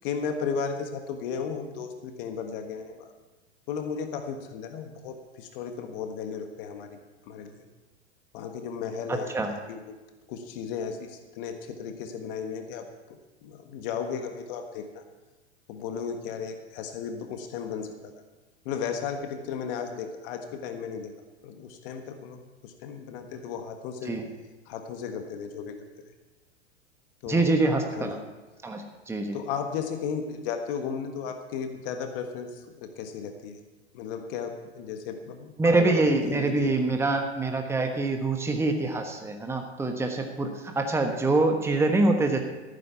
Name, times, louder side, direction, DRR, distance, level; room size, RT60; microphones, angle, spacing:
voice 1, 0.0-3.1 3.7-7.0 7.3-7.6 8.3-9.8 10.3-15.0 15.7-18.1 18.6-21.1 21.4-24.2 24.7-25.8 27.2-27.6 27.9-28.2 29.3-33.6 33.9-36.8, left 6 dB, 55° left, 6 dB, 1.5 m, -35 dB
voice 2, 9.1-9.5 24.1-24.2 27.3-28.2 28.6-29.4 35.6-42.4, right 2 dB, 10° right, 4 dB, 1.3 m, -25 dB
15.0 x 9.3 x 5.9 m, 1.2 s
hypercardioid pair, 100°, 33 cm